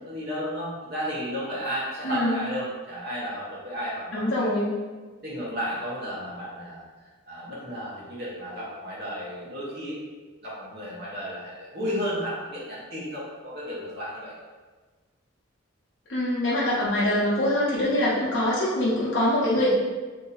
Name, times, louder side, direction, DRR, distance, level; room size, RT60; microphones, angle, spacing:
voice 1, 0.0-4.5 5.2-6.8 7.3-10.0 10.4-14.3, equal, 50° right, -7 dB, 1.1 m, -33 dB
voice 2, 4.1-4.7 16.1-19.7, left 1 dB, 55° left, -8 dB, 0.8 m, -24 dB
2.9 x 2.7 x 3.9 m, 1.4 s
head